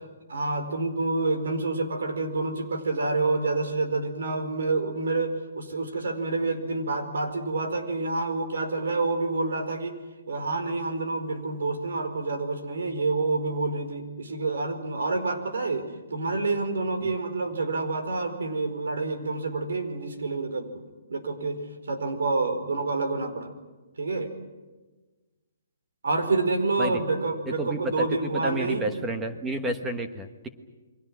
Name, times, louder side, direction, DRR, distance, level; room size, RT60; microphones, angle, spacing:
voice 1, 0.3-10.0 10.3-20.8 21.1-23.5 24.0-24.3 26.0-29.0, right 3 dB, 80° right, 7 dB, 4.6 m, -28 dB
voice 2, 27.5-30.5, right 1 dB, 5° right, 6 dB, 1.2 m, -30 dB
29.5 x 23.5 x 6.2 m, 1.2 s
hypercardioid pair, 180°, 0 cm